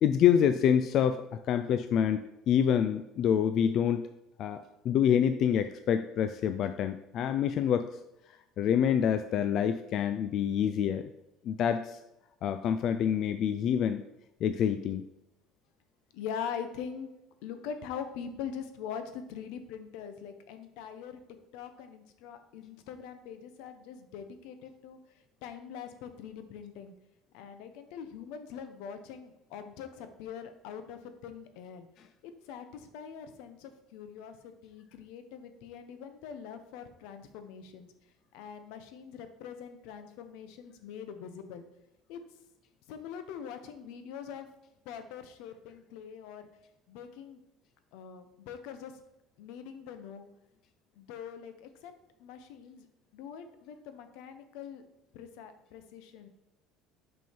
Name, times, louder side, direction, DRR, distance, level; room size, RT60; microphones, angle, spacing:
voice 1, 0.0-4.0 4.4-7.9 8.6-11.1 11.4-12.0 12.4-14.0 14.4-15.0, left 8 dB, 45° left, 9 dB, 0.3 m, -27 dB
voice 2, 16.1-17.1 17.4-21.2 21.5-26.9 27.3-31.9 32.2-37.9 38.3-41.6 42.1-42.2 42.9-44.5 44.8-46.5 46.9-47.4 47.9-48.9 49.4-50.3 51.0-51.9 52.2-52.9 53.1-54.8 55.1-56.3, left 7 dB, 80° left, 9 dB, 0.9 m, -43 dB
6.1 x 5.5 x 4.4 m, 0.88 s
cardioid pair, 160°, 0 cm